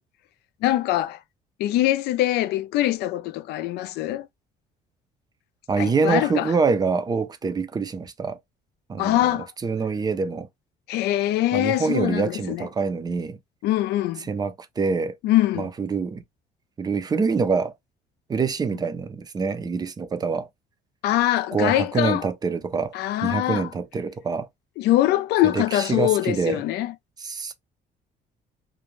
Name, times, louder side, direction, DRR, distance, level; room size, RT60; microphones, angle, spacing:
voice 1, 0.6-1.2 1.6-4.3 5.8-6.5 9.0-9.5 10.9-12.7 13.6-14.3 15.2-15.7 21.0-22.3 22.9-23.7 24.8-26.9, left 14 dB, 80° left, 0.4 m, -23 dB
voice 2, 5.7-8.4 8.9-10.5 11.5-13.4 14.3-15.1 15.6-16.2 16.8-17.7 18.3-20.5 21.5-22.9 23.2-24.5 25.4-26.6 27.2-27.5, right 4 dB, 25° right, 0.4 m, -25 dB
2.5 x 2.1 x 3.0 m
cardioid pair, 110°, 17 cm